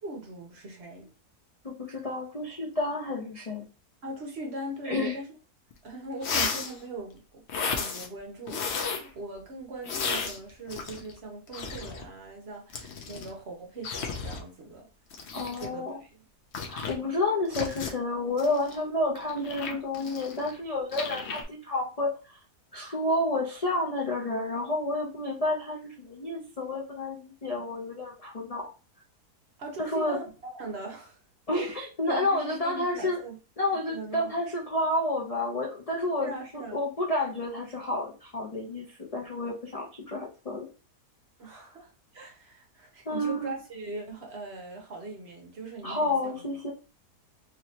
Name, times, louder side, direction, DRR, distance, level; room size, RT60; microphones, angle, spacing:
voice 1, 0.0-1.1 4.0-5.3 5.8-14.9 15.5-16.3 29.6-31.2 31.5-33.4 33.9-34.4 36.2-36.8 41.4-46.4, right 2 dB, 50° right, 0.9 m, -40 dB
voice 2, 1.6-3.6 4.8-5.2 15.3-16.0 16.7-22.4 22.7-28.7 29.8-30.2 31.5-33.2 33.6-40.7 41.5-41.7 43.1-43.5 45.8-46.7, left 2 dB, 75° left, 0.3 m, -30 dB
sound 1, 5.7-5.8 6.2-6.8 7.5-8.1 8.5-9.1 9.8-11.2 11.5-12.0 12.7-13.3 13.8-14.4 15.1-15.7 16.5-17.0 17.5-17.9 18.4-20.6 20.9-21.4, left 5 dB, 60° left, 0.8 m, -33 dB
3.1 x 3.1 x 2.8 m
omnidirectional pair, 1.7 m